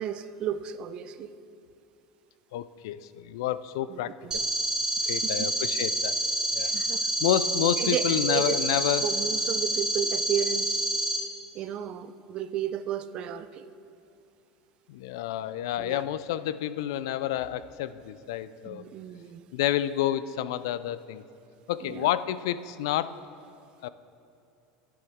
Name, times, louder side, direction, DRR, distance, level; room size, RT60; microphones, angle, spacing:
voice 1, 0.0-1.3 3.9-4.4 5.0-5.5 6.6-7.0 7.8-8.6 9.0-10.9 11.5-13.7 15.8-16.0 18.6-19.4 21.8-22.1, right 9 dB, 45° right, 12 dB, 0.5 m, -33 dB
voice 2, 2.5-4.5 5.1-6.1 6.5-6.7 7.2-9.1 14.9-18.8 19.5-21.2 21.7-23.2 23.8-23.9, left 12 dB, 75° left, 15 dB, 0.4 m, -29 dB
sound 1, 4.3-11.2, right 1 dB, 30° right, 1.9 m, -28 dB
11.0 x 10.0 x 3.6 m, 2.7 s
hypercardioid pair, 95°, 2 cm